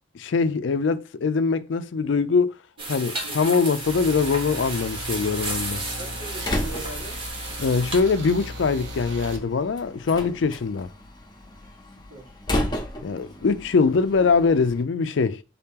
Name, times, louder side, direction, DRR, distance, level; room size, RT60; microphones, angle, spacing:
voice 1, 0.1-2.6 2.9-5.8 7.6-10.9 13.0-15.4, left 4 dB, 70° left, 0.4 m, -22 dB
sound 1, 2.8-8.0, right 2 dB, 30° right, 0.9 m, -33 dB
sound 2, 3.8-9.4, equal, 70° right, 1.0 m, -36 dB
Slam, 5.4-14.8, left 1 dB, 20° left, 0.7 m, -34 dB
voice 2, 6.0-7.2 11.6-12.4 13.3-13.4 14.1-14.5, right 2 dB, 90° right, 1.8 m, -41 dB
3.9 x 2.9 x 3.6 m
head